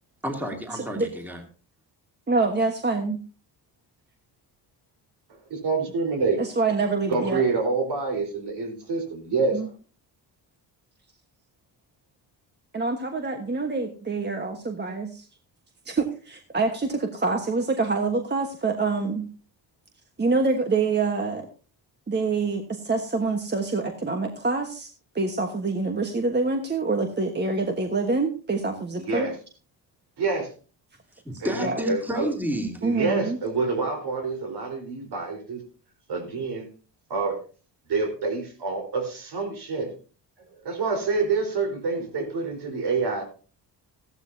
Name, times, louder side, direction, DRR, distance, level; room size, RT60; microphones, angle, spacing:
voice 1, 0.2-1.4 31.2-32.8, equal, 5° right, 2 dB, 2.6 m, -30 dB
voice 2, 0.7-1.1 2.3-3.2 6.4-7.4 9.5-9.7 12.7-15.2 15.8-19.3 20.2-21.5 22.1-24.9 25.1-29.3 31.6-31.8 32.8-33.4, right 3 dB, 25° right, 4 dB, 1.3 m, -26 dB
voice 3, 5.5-6.4 7.1-9.6 29.0-29.3 30.2-30.5 31.4-32.3 32.8-35.6 36.1-36.7 37.1-37.4 37.9-39.9 40.6-43.2, right 4 dB, 65° right, 2 dB, 4.3 m, -27 dB
15.0 x 12.0 x 2.7 m, 0.37 s
cardioid pair, 110°, 43 cm